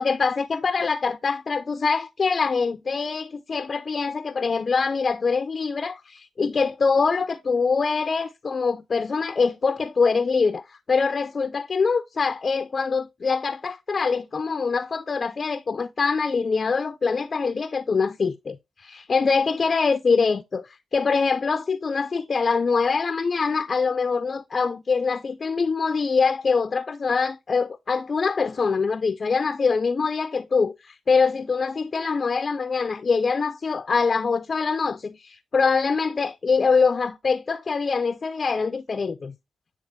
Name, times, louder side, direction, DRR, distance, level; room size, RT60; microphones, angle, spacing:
voice 1, 0.0-39.3, left 5 dB, 50° left, 0.5 m, -24 dB
9.3 x 3.4 x 3.2 m
cardioid pair, 60°, 0 cm